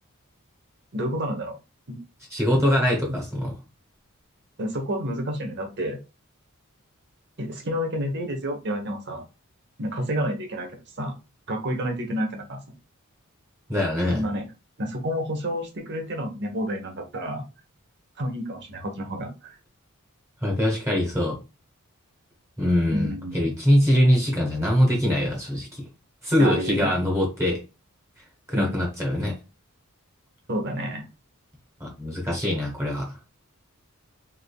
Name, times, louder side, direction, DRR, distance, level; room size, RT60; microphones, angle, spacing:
voice 1, 0.9-1.6 1.9-2.0 3.1-3.2 4.6-6.0 7.4-9.2 9.8-10.7 11.0-11.1 11.5-12.6 14.1-14.4 14.8-17.4 18.2-19.6 22.9-23.5 26.4-26.9 28.5-28.8 30.5-31.0, equal, 55° right, 3 dB, 1.0 m, -29 dB
voice 2, 2.3-3.5 13.7-14.2 20.4-21.4 22.6-25.9 26.2-27.6 28.5-29.4 31.8-33.2, equal, 15° right, -1 dB, 1.3 m, -23 dB
3.6 x 3.5 x 2.2 m, 0.29 s
head